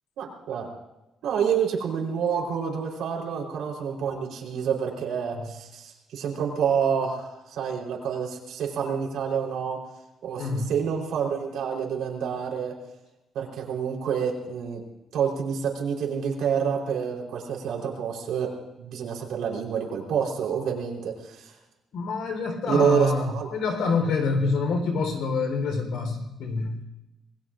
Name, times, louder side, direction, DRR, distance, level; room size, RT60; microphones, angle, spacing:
voice 1, 0.2-0.7 1.2-9.8 10.2-12.7 13.3-14.8 15.1-21.5 22.6-23.5, right 7 dB, 85° right, 0 dB, 4.0 m, -28 dB
voice 2, 10.4-10.7 21.9-26.8, left 4 dB, 80° left, 4 dB, 3.9 m, -26 dB
26.5 x 20.5 x 2.6 m, 0.96 s
cardioid pair, 175°, 0 cm